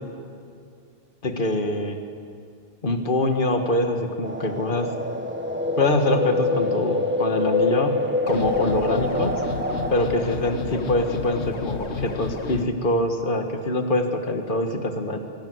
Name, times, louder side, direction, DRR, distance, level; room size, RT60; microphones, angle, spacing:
voice 1, 1.2-2.0 2.8-4.9 5.8-8.0 8.3-9.4 9.9-15.2, left 2 dB, 50° left, 5 dB, 1.9 m, -24 dB
sound 1, 4.2-9.9, left 2 dB, 10° right, 1.7 m, -25 dB
sound 2, 8.3-12.6, left 4 dB, 85° left, 1.6 m, -31 dB
24.5 x 23.0 x 8.0 m, 2.3 s
omnidirectional pair, 1.1 m